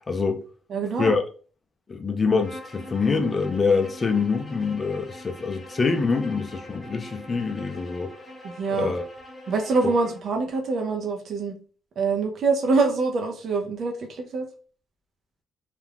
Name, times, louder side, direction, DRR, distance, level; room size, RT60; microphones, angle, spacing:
voice 1, 0.1-0.4 1.0-1.2 1.9-8.1 8.7-9.0, left 4 dB, 35° left, 0.4 m, -25 dB
voice 2, 0.7-1.2 8.4-9.0 9.5-11.5 12.0-14.5, right 4 dB, 60° right, 0.5 m, -25 dB
Bowed string instrument, 2.4-10.3, left 1 dB, 15° left, 1.0 m, -43 dB
2.4 x 2.2 x 3.3 m
cardioid pair, 90°, 0 cm